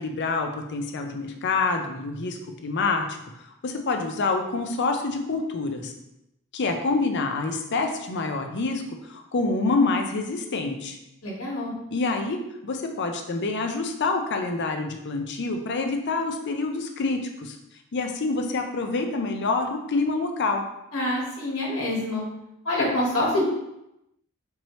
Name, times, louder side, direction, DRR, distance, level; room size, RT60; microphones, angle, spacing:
voice 1, 0.0-3.2 3.6-5.9 6.5-8.8 9.1-11.0 11.9-17.6 17.9-20.6, left 3 dB, 55° left, 4 dB, 0.5 m, -27 dB
voice 2, 11.2-11.7 20.9-22.2 22.6-23.4, left 1 dB, 70° left, -5 dB, 1.5 m, -26 dB
4.6 x 2.7 x 3.1 m, 0.85 s
head